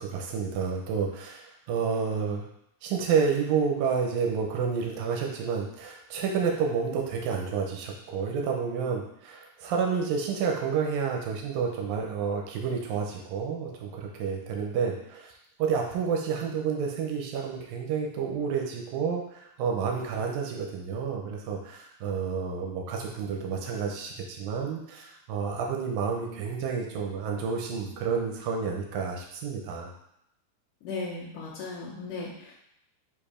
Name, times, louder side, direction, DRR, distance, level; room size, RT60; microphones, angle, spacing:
voice 1, 0.0-2.5 2.8-15.3 15.6-29.9, right 6 dB, 80° right, 1 dB, 2.0 m, -30 dB
voice 2, 30.8-32.5, left 3 dB, 85° left, -6 dB, 1.7 m, -36 dB
7.5 x 2.6 x 4.9 m, 0.77 s
omnidirectional pair, 5.0 m